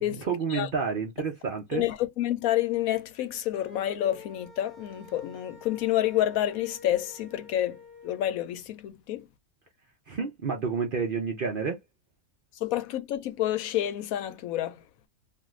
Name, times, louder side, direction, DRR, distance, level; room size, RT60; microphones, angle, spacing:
voice 1, 0.1-1.9 10.1-11.8, right 5 dB, 55° right, 0.6 m, -30 dB
voice 2, 1.7-9.3 12.6-14.8, left 13 dB, 80° left, 1.0 m, -29 dB
sound 1, 3.5-8.4, left 3 dB, 15° left, 1.1 m, -50 dB
2.6 x 2.4 x 3.1 m
omnidirectional pair, 1.5 m